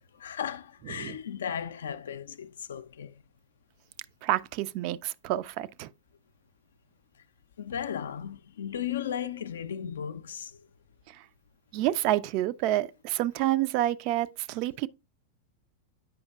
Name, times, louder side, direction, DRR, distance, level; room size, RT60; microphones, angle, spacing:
voice 1, 0.1-3.2 7.6-10.6, left 8 dB, 65° left, 0.3 m, -35 dB
voice 2, 4.2-5.9 11.1-11.2 11.7-14.9, right 14 dB, 45° right, 0.3 m, -28 dB
8.7 x 5.5 x 2.2 m
figure-of-eight pair, 90°, 0 cm